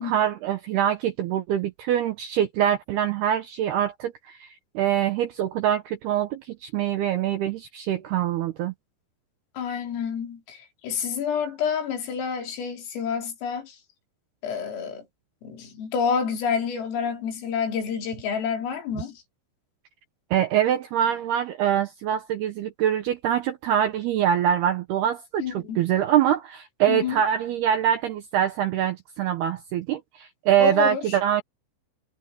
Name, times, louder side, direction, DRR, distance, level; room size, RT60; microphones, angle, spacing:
voice 1, 0.0-8.7 20.3-31.4, right 10 dB, 80° right, 2.4 m, -24 dB
voice 2, 9.6-13.8 14.4-15.0 15.4-19.2 25.4-25.8 26.9-27.2 30.6-31.2, left 6 dB, 80° left, 6.7 m, -28 dB
omnidirectional pair, 5.9 m